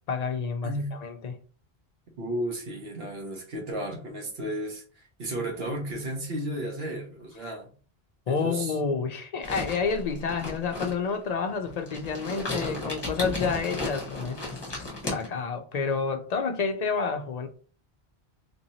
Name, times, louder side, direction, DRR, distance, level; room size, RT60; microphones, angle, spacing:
voice 1, 0.1-0.7 1.0-1.3 8.3-17.5, left 5 dB, 55° left, 0.5 m, -29 dB
voice 2, 0.6-0.9 2.2-7.7 8.3-8.8, right 1 dB, 70° right, 1.2 m, -33 dB
sound 1, 9.4-15.3, left 2 dB, 25° left, 1.0 m, -34 dB
3.4 x 2.9 x 2.7 m
omnidirectional pair, 1.1 m